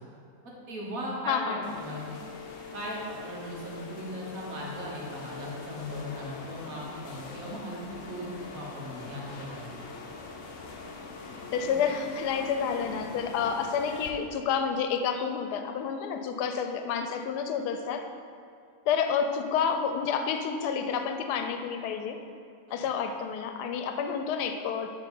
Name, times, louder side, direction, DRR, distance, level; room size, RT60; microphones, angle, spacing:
voice 1, 0.4-2.2 2.7-9.9 22.7-22.8, equal, 60° right, -4 dB, 1.7 m, -38 dB
voice 2, 1.3-1.7 11.5-18.0 18.9-22.2 22.7-24.9, left 6 dB, 80° left, 7 dB, 1.2 m, -29 dB
sound 1, 1.6-14.1, left 4 dB, 55° left, 0.8 m, -43 dB
8.4 x 3.5 x 5.3 m, 2.3 s
omnidirectional pair, 1.7 m